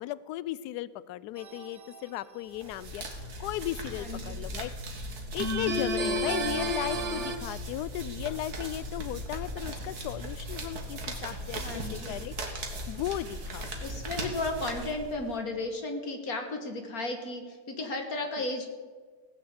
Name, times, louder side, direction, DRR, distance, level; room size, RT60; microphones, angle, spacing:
voice 1, 0.0-4.7 5.3-12.3 12.9-13.7 18.4-18.5, left 14 dB, 75° left, 18 dB, 1.1 m, -36 dB
sound 1, 1.4-2.0 5.4-7.4, equal, 45° right, 1.3 m, -31 dB
sound 2, 2.5-15.4, right 1 dB, 65° right, 2.2 m, -38 dB
voice 2, 3.9-4.4 11.6-12.2 13.8-18.7, left 2 dB, 55° left, 4 dB, 1.9 m, -34 dB
17.5 x 6.6 x 7.9 m, 1.6 s
omnidirectional pair, 1.8 m